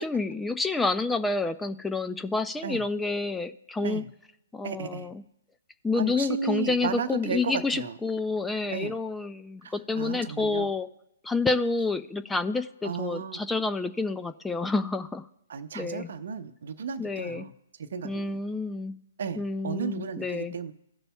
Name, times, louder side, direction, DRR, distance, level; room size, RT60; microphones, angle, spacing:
voice 1, 0.0-4.0 4.5-5.2 5.8-10.9 11.2-15.3 15.7-16.1 17.0-17.5 18.0-19.0 19.4-20.5, left 3 dB, 5° left, 10 dB, 0.3 m, -29 dB
voice 2, 4.6-5.1 6.0-7.9 8.7-8.9 9.6-10.7 12.8-13.4 15.5-17.5 17.8-18.4 19.2-20.7, right 6 dB, 60° right, 11 dB, 0.7 m, -34 dB
16.5 x 6.7 x 2.3 m, 0.84 s
figure-of-eight pair, 130°, 0 cm